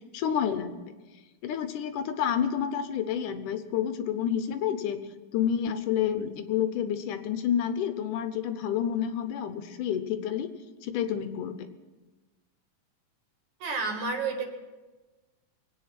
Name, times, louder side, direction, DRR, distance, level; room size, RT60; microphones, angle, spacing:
voice 1, 0.1-0.8 1.4-5.0 5.3-10.5 10.8-11.7, left 9 dB, 75° left, 9 dB, 2.3 m, -29 dB
voice 2, 13.6-14.4, right 4 dB, 60° right, 2 dB, 3.1 m, -30 dB
24.0 x 9.2 x 5.9 m, 1.2 s
omnidirectional pair, 3.9 m